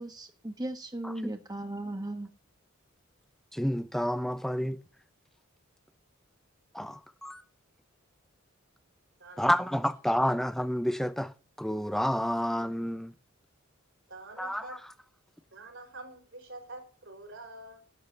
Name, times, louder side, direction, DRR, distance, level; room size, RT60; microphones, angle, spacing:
voice 1, 0.0-2.3, right 1 dB, 20° right, 1.4 m, -37 dB
voice 2, 3.5-4.8 6.7-7.4 9.4-13.1 14.4-14.8, equal, ahead, 0.6 m, -30 dB
voice 3, 14.1-14.9 15.5-17.8, right 2 dB, 65° right, 4.5 m, -46 dB
12.0 x 8.1 x 6.7 m
head